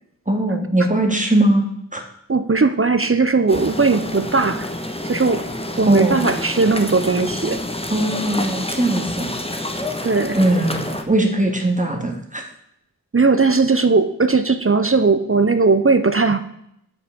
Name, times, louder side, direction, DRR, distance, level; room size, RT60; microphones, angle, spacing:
voice 1, 0.3-2.0 5.9-6.3 7.9-9.3 10.3-12.4, right 1 dB, 20° right, 2 dB, 2.3 m, -20 dB
voice 2, 2.3-4.7 5.0-5.4 5.8-7.6 10.0-10.4 13.1-16.4, right 4 dB, 40° right, 10 dB, 0.7 m, -18 dB
sound 1, 3.5-11.0, left 1 dB, 15° left, 1.2 m, -28 dB
8.3 x 6.2 x 6.7 m, 0.74 s
wide cardioid pair, 55°, 34 cm